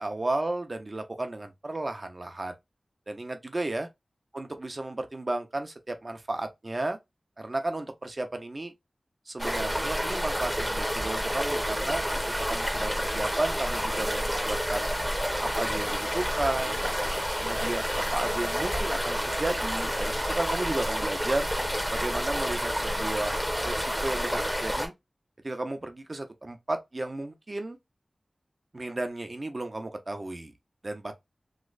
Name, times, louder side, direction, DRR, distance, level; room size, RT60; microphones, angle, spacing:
voice 1, 0.0-2.5 3.1-3.9 4.3-7.0 7.4-8.7 9.3-12.0 12.5-14.9 15.4-16.9 17.4-17.8 18.1-21.5 21.9-24.9 25.4-27.8 28.7-30.5 30.8-31.1, right 2 dB, 45° right, 0.7 m, -33 dB
sound 1, 9.4-24.9, equal, ahead, 0.9 m, -29 dB
3.2 x 2.9 x 2.4 m
wide cardioid pair, 55°, 0 cm